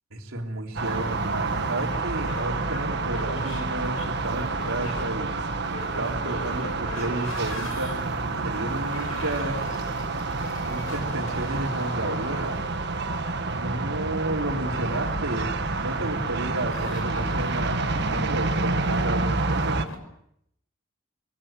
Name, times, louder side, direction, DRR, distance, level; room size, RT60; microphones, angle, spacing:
voice 1, 0.1-5.3 6.0-7.9 8.4-9.6 10.6-12.5 13.5-19.8, right 1 dB, 90° right, -1 dB, 3.4 m, -32 dB
sound 1, 0.8-19.9, right 3 dB, 55° right, 1.7 m, -28 dB
sound 2, 0.9-20.0, left 1 dB, 80° left, 5.7 m, -41 dB
26.5 x 21.5 x 7.6 m, 0.75 s
head